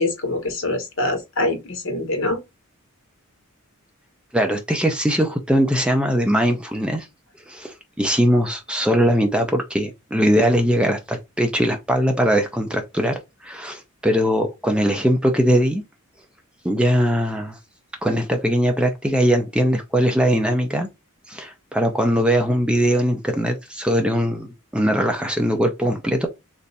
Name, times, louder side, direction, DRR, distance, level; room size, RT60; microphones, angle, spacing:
voice 1, 0.0-2.4, left 2 dB, 60° left, 1.2 m, -24 dB
voice 2, 4.3-7.1 7.5-15.8 16.6-17.6 18.0-20.9 21.3-26.3, equal, 5° right, 0.5 m, -20 dB
3.3 x 2.6 x 4.1 m
head